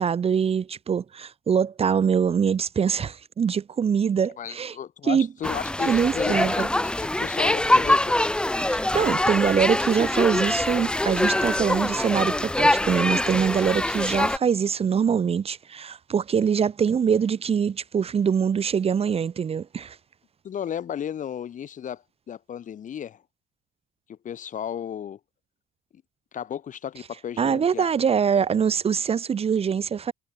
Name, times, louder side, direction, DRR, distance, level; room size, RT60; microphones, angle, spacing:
voice 1, 0.0-4.7 5.1-5.3 5.9-6.7 8.6-20.0 27.4-30.1, right 7 dB, 35° right, 1.2 m, -24 dB
voice 2, 4.4-8.2 20.4-23.2 24.1-25.2 25.9-26.0 26.3-27.9, left 9 dB, 50° left, 3.5 m, -34 dB
sound 1, 5.4-14.4, left 1 dB, 5° left, 0.5 m, -24 dB
cardioid pair, 110°, 17 cm